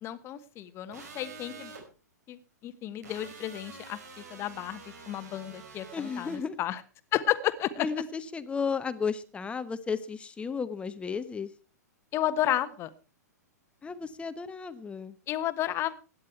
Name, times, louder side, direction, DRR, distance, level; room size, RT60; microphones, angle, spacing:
voice 1, 0.0-1.7 2.3-6.8 7.1-7.9 12.1-12.9 15.3-16.0, left 12 dB, 30° left, 13 dB, 1.2 m, -32 dB
sound 1, 0.9-1.8 3.0-6.4, right 4 dB, 65° right, 5.0 m, -47 dB
voice 2, 5.9-6.6 7.8-11.5 13.8-15.2, left 5 dB, 10° left, 13 dB, 1.1 m, -34 dB
16.5 x 10.5 x 4.5 m, 0.34 s
figure-of-eight pair, 110°, 9 cm